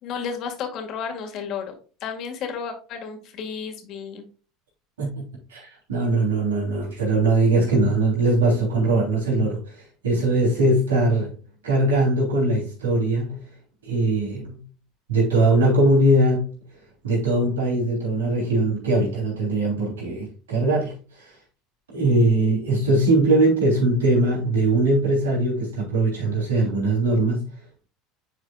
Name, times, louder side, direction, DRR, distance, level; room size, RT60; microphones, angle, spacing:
voice 1, 0.0-4.3, left 6 dB, 55° left, 1.8 m, -32 dB
voice 2, 5.5-9.6 10.0-11.3 11.6-13.3 13.8-14.6 15.1-16.5 17.0-20.9 21.9-27.4, right 2 dB, 90° right, 3.3 m, -21 dB
9.7 x 4.7 x 2.4 m
hypercardioid pair, 85°, 0 cm